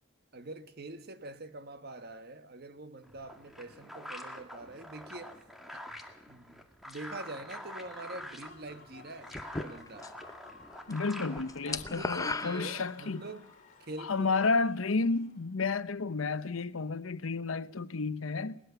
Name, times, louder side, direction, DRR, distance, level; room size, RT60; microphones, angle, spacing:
voice 1, 0.3-5.5 5.7-5.9 6.3-10.1 11.7-13.5 13.8-14.6, right 2 dB, 50° right, 1.3 m, -45 dB
Robot Breath, 3.0-12.3, equal, ahead, 2.0 m, -46 dB
Human voice / Cheering / Applause, 7.9-15.5, left 3 dB, 40° left, 3.1 m, -57 dB
sound 1, 9.3-10.3 10.6-11.0 11.2-13.3, left 3 dB, 15° left, 0.7 m, -37 dB
voice 2, 10.9-13.2 14.0-18.6, left 4 dB, 80° left, 0.8 m, -31 dB
20.0 x 19.5 x 6.9 m
head